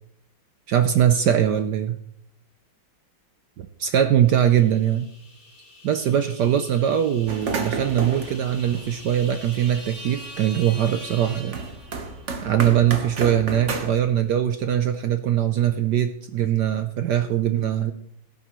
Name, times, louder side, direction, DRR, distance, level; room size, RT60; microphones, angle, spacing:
voice 1, 0.7-2.0 3.6-5.1 5.8-11.6 12.4-17.9, right 10 dB, 70° right, 8 dB, 1.1 m, -21 dB
sound 1, 4.3-12.4, equal, 35° left, 4.7 m, -43 dB
sound 2, 7.3-9.9 10.3-13.9, right 4 dB, 45° right, 1.1 m, -31 dB
17.5 x 12.0 x 3.1 m, 0.71 s
omnidirectional pair, 2.3 m